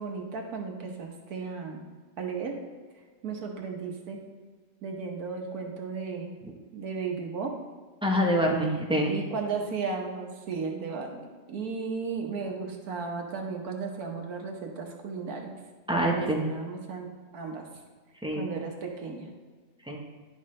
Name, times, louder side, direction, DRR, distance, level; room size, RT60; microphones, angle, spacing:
voice 1, 0.0-1.8 2.2-2.6 3.2-4.2 4.8-6.3 6.7-7.5 9.1-15.6 15.9-17.7 18.4-19.3, right 5 dB, 65° right, 2 dB, 1.5 m, -35 dB
voice 2, 8.0-9.1 15.9-16.5 18.2-18.4 19.9-20.0, equal, 5° right, -1 dB, 0.5 m, -25 dB
11.0 x 6.0 x 3.2 m, 1.5 s
omnidirectional pair, 1.8 m